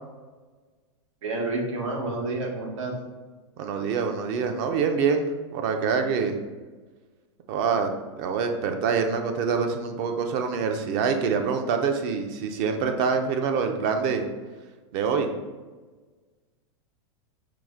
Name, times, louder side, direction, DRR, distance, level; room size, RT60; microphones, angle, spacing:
voice 1, 1.2-2.9, right 2 dB, 85° right, 0 dB, 1.0 m, -29 dB
voice 2, 3.6-5.3 5.5-6.4 7.5-14.3 14.9-15.3, right 5 dB, 45° right, 6 dB, 0.5 m, -25 dB
4.8 x 2.1 x 3.5 m, 1.3 s
supercardioid pair, 135°, 15 cm